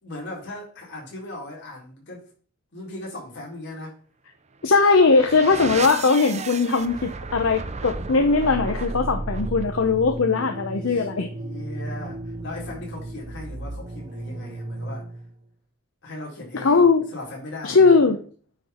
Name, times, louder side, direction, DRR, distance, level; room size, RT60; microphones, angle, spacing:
voice 1, 0.0-2.3 2.7-4.0 10.9-15.1 16.0-18.0, left 2 dB, 55° left, 3.8 m, -38 dB
voice 2, 4.6-11.3 16.6-17.0 17.6-18.2, left 4 dB, 75° left, 0.8 m, -19 dB
sound 1, 4.6-15.3, right 2 dB, 35° right, 0.6 m, -34 dB
9.7 x 3.9 x 4.4 m
head